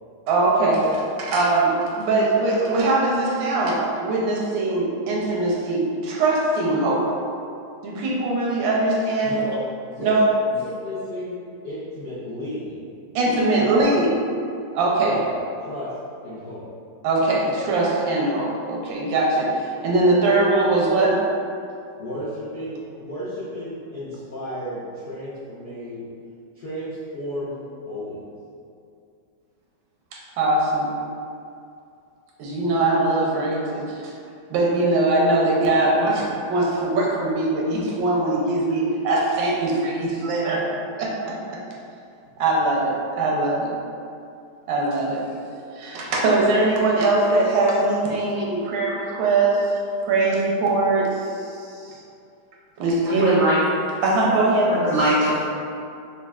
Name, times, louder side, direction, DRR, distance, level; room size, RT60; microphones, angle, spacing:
voice 1, 0.3-7.0 7.8-9.4 10.0-10.2 13.1-14.1 14.7-15.1 17.0-19.5 19.8-21.2 30.1-30.9 32.4-34.1 34.5-40.6 41.0-41.4 42.4-43.7 44.7-45.2 45.8-52.0 52.8-53.4 54.0-54.8, right 2 dB, 85° right, -3 dB, 1.4 m, -21 dB
voice 2, 9.2-10.1 10.5-11.4 11.6-12.8 13.6-13.9 15.0-15.9 16.2-16.6 22.0-26.1 26.5-27.5 27.8-28.3 42.3-42.4, equal, 80° left, -12 dB, 0.5 m, -33 dB
voice 3, 53.0-53.6 54.7-55.4, right 1 dB, 65° right, -9 dB, 0.7 m, -21 dB
5.1 x 2.4 x 2.3 m, 2.5 s
omnidirectional pair, 2.0 m